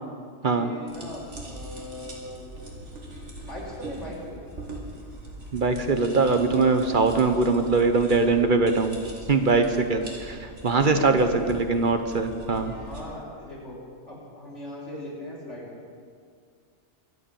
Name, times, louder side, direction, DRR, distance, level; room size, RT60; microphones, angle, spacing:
voice 1, 0.4-2.5 3.5-4.4 10.7-11.6 12.7-13.8 14.1-15.7, left 1 dB, 75° left, -5 dB, 5.2 m, -39 dB
sound 1, 0.9-13.0, right 1 dB, 70° right, 2.8 m, -42 dB
voice 2, 5.5-9.0 9.3-12.7, right 3 dB, 45° right, 7 dB, 1.1 m, -22 dB
23.5 x 8.4 x 7.0 m, 2.2 s
omnidirectional pair, 1.2 m